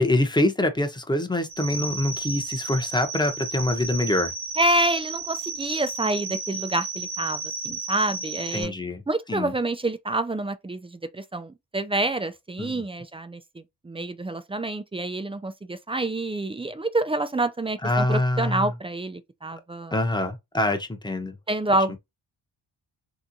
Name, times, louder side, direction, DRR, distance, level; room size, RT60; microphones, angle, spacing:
voice 1, 0.0-4.3 8.5-9.0 9.3-9.5 12.6-12.8 17.8-18.7 19.9-21.4, left 1 dB, 10° left, 0.7 m, -25 dB
sound 1, 1.5-8.6, right 4 dB, 65° right, 1.1 m, -33 dB
voice 2, 4.6-8.7 9.1-19.9 21.5-22.0, right 2 dB, 15° right, 0.3 m, -27 dB
3.4 x 2.9 x 2.6 m
cardioid pair, 80°, 49 cm